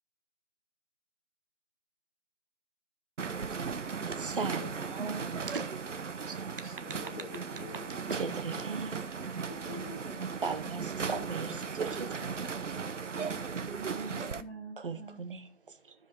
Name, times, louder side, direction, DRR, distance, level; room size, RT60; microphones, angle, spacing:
sound 1, 3.2-14.4, right 5 dB, 75° right, 1.0 m, -37 dB
voice 1, 4.1-5.7 6.3-7.0 8.1-9.0 10.4-12.2 14.8-15.9, right 4 dB, 45° right, 1.4 m, -38 dB
voice 2, 4.6-5.0 5.3-5.4 6.6-8.1 9.5-10.0 11.2-11.3, left 4 dB, 30° left, 2.7 m, -47 dB
voice 3, 9.1-10.8 11.3-12.3 13.2-15.2, right 4 dB, ahead, 0.7 m, -48 dB
13.5 x 4.9 x 4.3 m
figure-of-eight pair, 160°, 36 cm